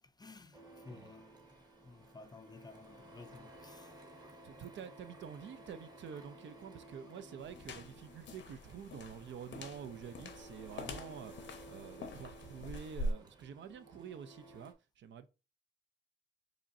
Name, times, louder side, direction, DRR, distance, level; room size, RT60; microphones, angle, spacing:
voice 1, 0.2-0.6 0.9-1.4 1.8-3.9, left 3 dB, 20° left, 0.4 m, -54 dB
Printer, 0.5-14.7, right 2 dB, 20° right, 0.9 m, -56 dB
voice 2, 4.4-15.3, right 7 dB, 80° right, 0.5 m, -48 dB
sound 1, 7.4-13.1, equal, 90° left, 0.8 m, -44 dB
4.9 x 3.1 x 2.7 m
wide cardioid pair, 110°, 19 cm